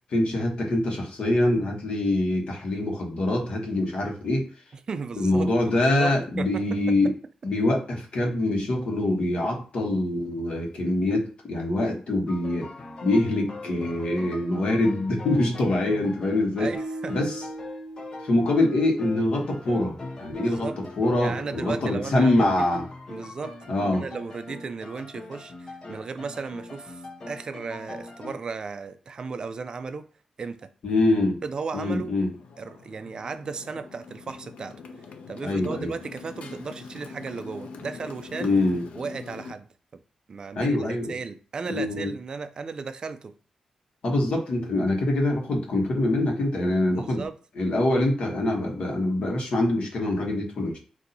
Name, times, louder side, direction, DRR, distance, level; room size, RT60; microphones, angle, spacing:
voice 1, 0.1-4.5 5.2-7.1 7.4-12.7 13.0-16.7 17.1-17.4 18.2-20.7 21.0-22.9 23.7-24.0 30.8-31.4 31.7-32.3 35.4-35.9 38.4-38.8 40.5-41.1 41.7-42.1 44.0-47.2 47.6-50.8, left 1 dB, 60° left, 1.2 m, -24 dB
voice 2, 4.9-6.7 16.6-17.1 20.3-20.8 21.2-22.7 23.1-23.6 23.9-27.0 27.3-30.1 30.4-30.7 31.4-32.2 32.6-34.8 35.3-38.5 39.0-39.7 40.3-43.3 46.9-47.4, right 4 dB, 40° right, 0.4 m, -35 dB
sound 1, 12.3-28.4, left 2 dB, 35° left, 0.7 m, -41 dB
sound 2, 16.7-19.9, right 2 dB, 5° left, 1.1 m, -39 dB
Motorcycle, 32.3-39.6, left 4 dB, 80° left, 0.5 m, -43 dB
4.1 x 2.6 x 4.0 m
wide cardioid pair, 165°, 2 cm